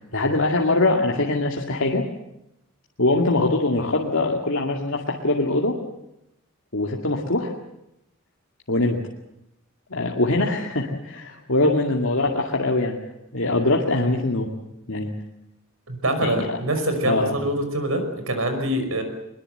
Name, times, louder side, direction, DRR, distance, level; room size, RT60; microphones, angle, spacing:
voice 1, 0.0-2.0 3.0-5.8 6.7-7.5 8.7-9.0 9.9-13.0 13.3-14.5 14.9-15.1 16.2-16.6 17.0-17.4, left 2 dB, 75° left, 0 dB, 2.3 m, -22 dB
voice 2, 15.9-19.0, right 1 dB, 85° right, 7 dB, 5.5 m, -24 dB
22.0 x 22.0 x 7.9 m, 0.85 s
head